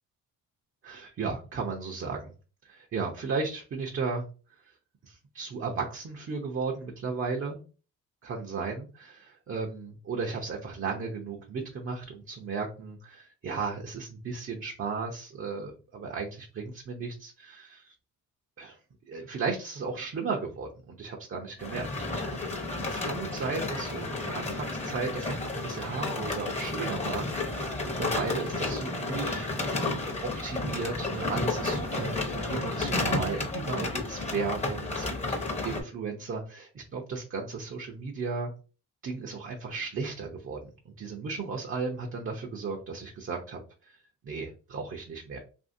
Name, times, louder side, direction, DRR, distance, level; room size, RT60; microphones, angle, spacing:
voice 1, 0.8-2.3 2.6-4.3 5.0-7.6 8.2-17.9 18.6-18.8 19.1-22.6 22.9-29.5 30.0-38.5 39.0-43.6 43.9-44.0 44.2-45.4, right 4 dB, 40° right, 0 dB, 0.6 m, -35 dB
sound 1, 21.6-35.8, left 2 dB, 20° left, 0.8 m, -32 dB
2.7 x 2.6 x 2.6 m, 0.35 s
cardioid pair, 85°, 32 cm